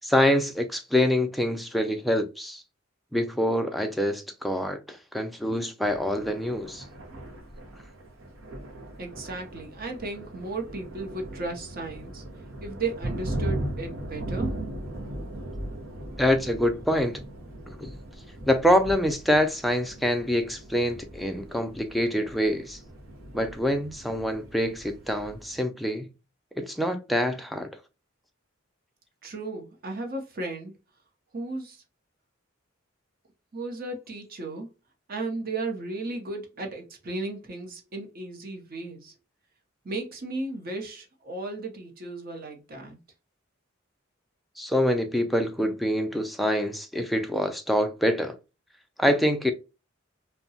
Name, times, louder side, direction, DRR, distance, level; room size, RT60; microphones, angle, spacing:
voice 1, 0.0-2.6 3.1-6.8 16.2-17.2 17.7-17.9 18.5-22.8 23.3-26.1 26.6-27.7 44.6-48.3 49.0-49.5, equal, ahead, 0.3 m, -25 dB
Thunder, 5.8-25.6, right 1 dB, 85° right, 0.8 m, -38 dB
voice 2, 9.0-12.2 12.6-14.5 29.2-30.7 31.3-31.8 33.5-34.7 35.1-39.1 39.8-43.0, right 3 dB, 45° right, 0.7 m, -35 dB
2.7 x 2.1 x 2.7 m
head